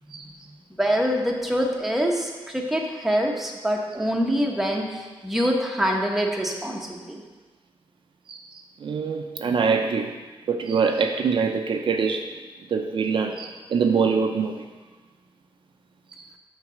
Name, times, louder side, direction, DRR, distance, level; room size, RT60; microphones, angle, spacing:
voice 1, 0.8-7.2, equal, 5° right, 0 dB, 0.9 m, -25 dB
voice 2, 8.8-10.1 10.5-12.3 12.7-14.7 16.2-16.3, right 5 dB, 60° right, 4 dB, 0.5 m, -24 dB
6.4 x 4.0 x 6.2 m, 1.3 s
wide cardioid pair, 120°, 10 cm